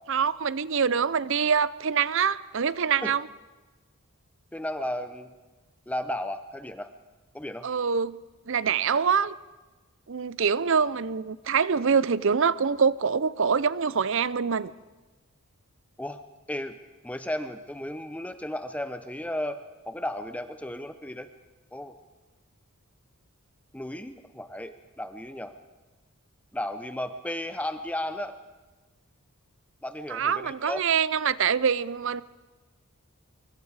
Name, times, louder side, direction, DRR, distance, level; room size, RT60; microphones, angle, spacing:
voice 1, 0.1-3.3 7.6-8.2 8.5-9.4 10.1-14.7 30.1-32.2, right 6 dB, 60° right, 0.6 m, -25 dB
voice 2, 4.5-5.3 5.9-6.9 7.3-7.7 16.0-16.2 16.5-16.7 17.0-21.3 21.7-21.9 23.7-25.5 26.5-28.4 29.8-30.8, left 1 dB, 5° left, 0.7 m, -34 dB
24.5 x 24.5 x 4.8 m
head